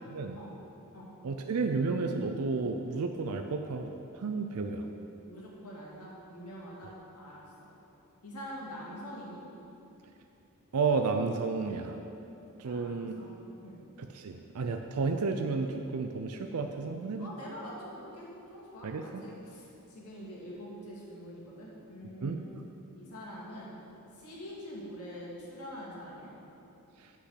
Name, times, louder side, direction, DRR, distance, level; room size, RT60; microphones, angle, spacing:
voice 1, 1.2-4.8 10.7-12.0 12.6-13.1 14.0-17.3 18.8-19.2 22.2-22.5, right 4 dB, 75° right, 5 dB, 0.5 m, -32 dB
voice 2, 5.2-7.7 8.2-9.4 12.6-13.4 13.6-13.8 17.2-22.5 22.9-23.7 24.1-26.3, equal, 80° left, -5 dB, 2.2 m, -45 dB
8.1 x 5.8 x 6.3 m, 2.9 s
head